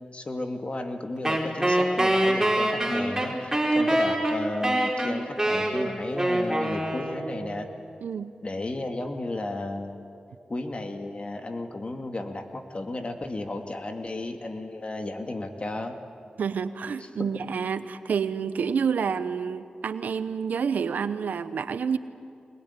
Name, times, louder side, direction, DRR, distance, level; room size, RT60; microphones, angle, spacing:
voice 1, 0.0-7.7 8.4-10.0 10.5-15.9 17.2-17.3, left 2 dB, 45° left, 5 dB, 2.4 m, -34 dB
Wind instrument woodwind instrument, 1.2-7.5, right 1 dB, 15° right, 4.9 m, -24 dB
voice 2, 16.4-22.0, right 6 dB, 90° right, 13 dB, 0.8 m, -28 dB
21.0 x 20.5 x 9.9 m, 2.4 s
cardioid pair, 50°, 3 cm